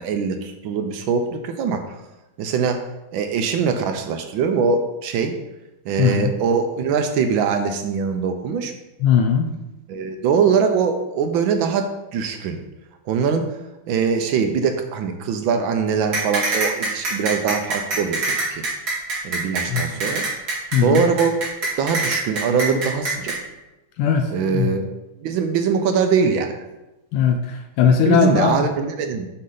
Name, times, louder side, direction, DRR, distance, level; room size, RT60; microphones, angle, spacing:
voice 1, 0.0-1.8 2.4-2.8 3.1-5.3 5.9-8.7 9.9-12.6 13.1-13.5 13.9-18.6 19.2-20.2 20.8-21.4 21.8-23.4 24.3-24.9 25.2-26.5 28.0-29.3, right 6 dB, 75° right, 6 dB, 1.3 m, -22 dB
voice 2, 6.0-6.3 9.0-9.5 19.7-19.8 20.7-21.1 24.0-24.7 27.1-28.7, left 7 dB, 85° left, 4 dB, 1.5 m, -19 dB
sound 1, 16.1-23.4, right 2 dB, 45° right, 2.5 m, -24 dB
6.4 x 5.4 x 3.9 m, 1.0 s
omnidirectional pair, 2.4 m